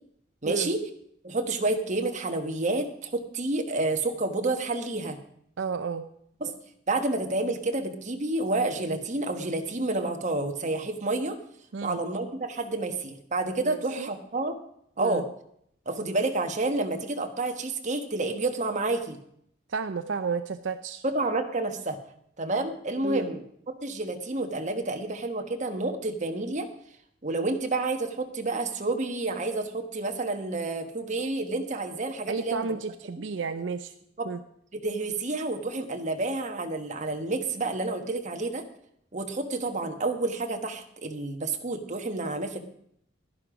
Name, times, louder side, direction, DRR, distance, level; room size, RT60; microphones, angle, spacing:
voice 1, 0.4-0.8 1.2-5.2 6.4-6.5 6.9-11.4 11.8-14.6 15.0-15.2 15.8-19.2 21.0-22.0 22.4-23.4 23.8-26.7 27.2-32.7 34.2-34.3 34.7-38.6 39.1-42.6, right 2 dB, 40° right, 5 dB, 1.3 m, -29 dB
voice 2, 5.6-6.0 11.7-12.0 13.6-14.1 15.0-15.2 19.7-21.0 23.0-23.3 32.3-33.9 34.3-34.4, right 5 dB, 75° right, 10 dB, 0.6 m, -32 dB
11.5 x 11.0 x 5.0 m, 0.69 s
head